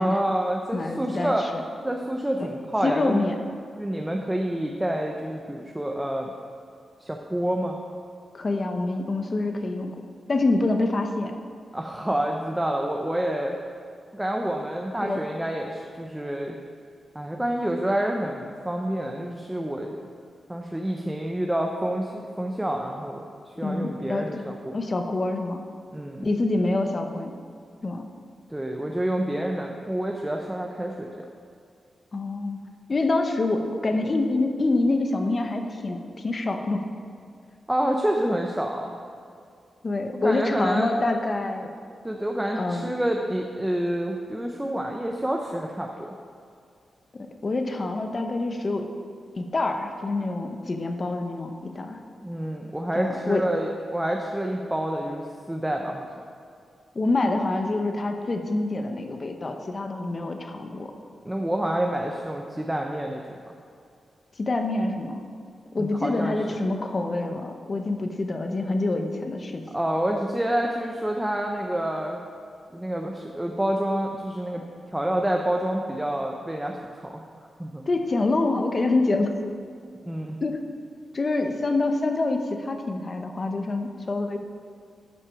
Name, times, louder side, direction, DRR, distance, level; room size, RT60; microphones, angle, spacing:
voice 1, 0.0-1.5 1.8-3.2 3.8-6.3 7.0-7.8 11.7-13.6 14.1-16.6 17.1-20.0 20.5-23.2 23.6-24.8 25.9-26.3 28.5-31.3 37.7-38.9 40.2-40.9 42.0-46.1 52.2-56.1 61.2-63.5 65.8-66.6 69.7-72.2 72.7-74.6 74.9-77.2 77.6-77.9 80.1-80.4, right 1 dB, 10° right, 1 dB, 0.6 m, -28 dB
voice 2, 0.7-1.6 2.4-2.5 2.8-3.4 8.3-10.0 10.3-11.3 15.0-15.2 23.6-24.4 24.7-25.6 26.2-27.3 27.8-28.0 32.1-32.6 32.9-36.8 39.8-41.7 42.6-42.9 47.1-48.9 49.4-52.0 52.9-53.4 56.9-60.9 64.4-65.3 65.7-69.7 77.9-79.4 80.4-80.6 81.1-84.4, left 2 dB, 35° left, 5 dB, 0.8 m, -26 dB
11.5 x 6.1 x 4.8 m, 2.3 s
wide cardioid pair, 120°, 0 cm